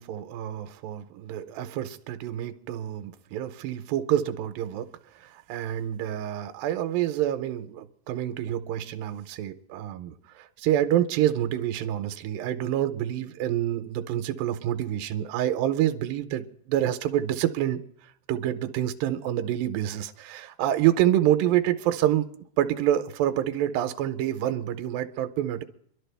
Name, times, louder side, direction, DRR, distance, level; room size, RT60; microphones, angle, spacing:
voice 1, 0.0-4.9 5.2-17.8 18.3-22.3 22.6-25.6, right 12 dB, 80° right, 9 dB, 2.4 m, -27 dB
24.5 x 11.5 x 3.4 m, 0.66 s
omnidirectional pair, 4.3 m